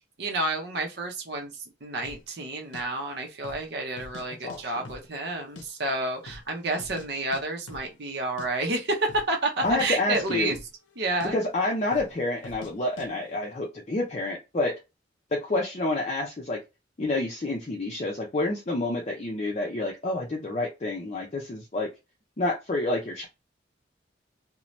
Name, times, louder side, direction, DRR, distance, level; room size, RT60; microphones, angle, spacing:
voice 1, 0.2-1.5 1.8-10.6 11.0-11.4, right 2 dB, 60° right, 0.7 m, -30 dB
sound 1, 2.0-2.2 2.7-2.8 3.3-3.7 4.0-4.6 4.8-5.7 5.9-6.0 6.3-7.1 7.3-7.4 7.7-7.9 8.2-8.5 9.0-9.3 9.6-10.9 11.2-11.3 11.9-12.1 12.4-12.7 13.0-13.1, left 2 dB, 90° left, 0.6 m, -44 dB
voice 2, 4.4-4.9 9.6-10.5 11.2-14.7 15.4-16.6 17.0-21.9 22.4-23.3, left 2 dB, 35° left, 0.5 m, -28 dB
2.7 x 2.1 x 3.1 m
head